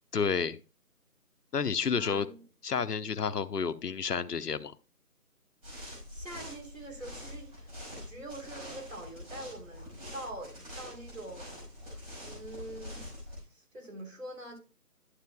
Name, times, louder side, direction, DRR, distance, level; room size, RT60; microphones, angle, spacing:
voice 1, 0.1-0.6 1.5-2.3 2.6-4.7, left 6 dB, 90° left, 0.8 m, -30 dB
voice 2, 1.9-2.4 5.8-11.7 12.2-13.0 13.4-14.6, right 1 dB, 55° right, 3.5 m, -45 dB
sound 1, 5.6-13.4, left 1 dB, 25° right, 5.2 m, -45 dB
11.5 x 7.6 x 2.3 m
figure-of-eight pair, 175°, 46 cm